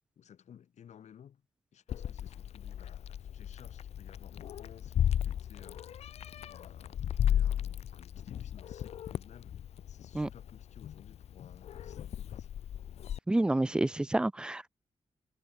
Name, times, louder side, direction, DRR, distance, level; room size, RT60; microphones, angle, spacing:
voice 1, 0.1-1.4 1.7-6.0 6.4-12.5, left 9 dB, 90° left, 3.5 m, -57 dB
Meow, 1.9-13.2, left 10 dB, 65° left, 0.4 m, -35 dB
voice 2, 13.3-14.7, right 1 dB, 10° right, 0.3 m, -29 dB
wide cardioid pair, 180°, 11 cm